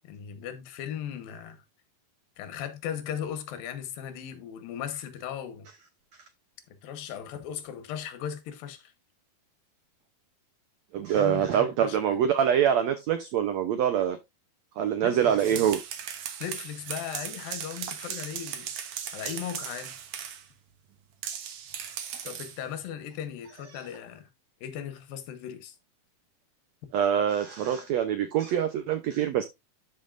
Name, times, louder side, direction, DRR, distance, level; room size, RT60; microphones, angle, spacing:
voice 1, 0.0-1.6 2.4-5.7 6.8-8.9 11.1-12.2 15.0-15.6 16.4-18.7 19.1-20.0 22.2-24.3 24.6-25.8, left 9 dB, 80° left, 2.9 m, -37 dB
voice 2, 10.9-14.2 14.8-15.8 26.9-29.4, right 9 dB, 85° right, 1.5 m, -25 dB
sound 1, 15.2-20.5 21.2-22.6, right 9 dB, 65° right, 2.3 m, -37 dB
12.5 x 5.4 x 2.5 m
omnidirectional pair, 4.1 m